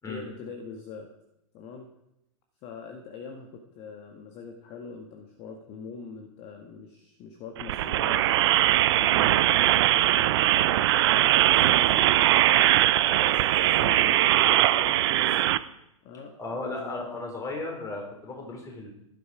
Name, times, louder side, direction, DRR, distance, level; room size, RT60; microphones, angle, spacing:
voice 1, 0.0-1.1 1.5-2.0 2.6-12.3 13.0-15.6 16.0-17.2, left 5 dB, 35° left, 4 dB, 1.8 m, -43 dB
sound 1, 7.6-15.6, right 14 dB, 50° right, 0.6 m, -21 dB
voice 2, 16.4-18.9, left 2 dB, 20° left, 1 dB, 4.3 m, -35 dB
15.0 x 12.0 x 5.0 m, 0.83 s
figure-of-eight pair, 100°, 18 cm